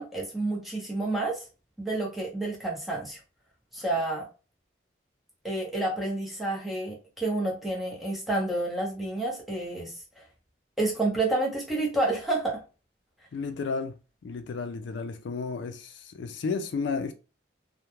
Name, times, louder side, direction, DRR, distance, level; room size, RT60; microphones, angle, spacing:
voice 1, 0.0-1.4 1.8-3.2 3.7-4.3 5.4-10.2 10.8-12.6, right 2 dB, ahead, 0.7 m, -29 dB
voice 2, 13.3-13.9 14.2-17.1, left 4 dB, 75° left, 0.4 m, -32 dB
2.3 x 2.1 x 3.0 m
head